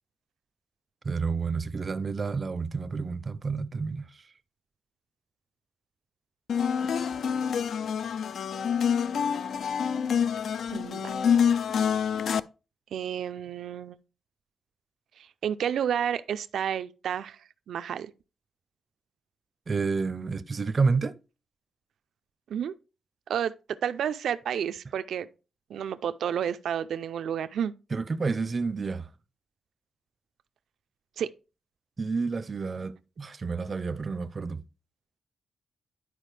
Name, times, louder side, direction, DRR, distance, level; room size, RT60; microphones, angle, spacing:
voice 1, 1.0-4.1 19.7-21.2 27.9-29.1 32.0-34.6, right 4 dB, 30° right, 0.5 m, -29 dB
sound 1, 6.5-12.4, left 7 dB, 65° left, 0.3 m, -27 dB
voice 2, 10.7-11.1 12.9-14.0 15.2-18.1 22.5-22.7 23.3-25.3 25.7-27.7 31.2-31.3, right 9 dB, 90° right, 0.4 m, -31 dB
11.0 x 4.8 x 3.3 m
wide cardioid pair, 160°, 0 cm